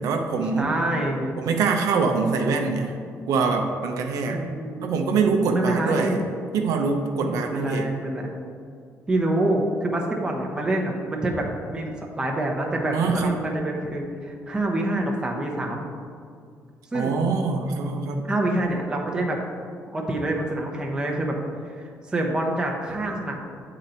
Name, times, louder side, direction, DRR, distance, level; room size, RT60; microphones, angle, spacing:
voice 1, 0.0-0.7 1.4-2.9 3.3-4.4 4.8-6.2 6.5-7.9 12.9-13.3 16.9-18.3, right 4 dB, 85° right, 3 dB, 0.6 m, -24 dB
voice 2, 0.5-1.4 4.3-4.9 5.5-6.2 7.2-8.3 9.1-15.9 16.9-17.2 18.3-19.4 19.9-21.4 21.7-23.3, right 1 dB, 15° right, 0 dB, 0.8 m, -26 dB
8.2 x 3.9 x 4.3 m, 2.2 s
cardioid pair, 145°, 6 cm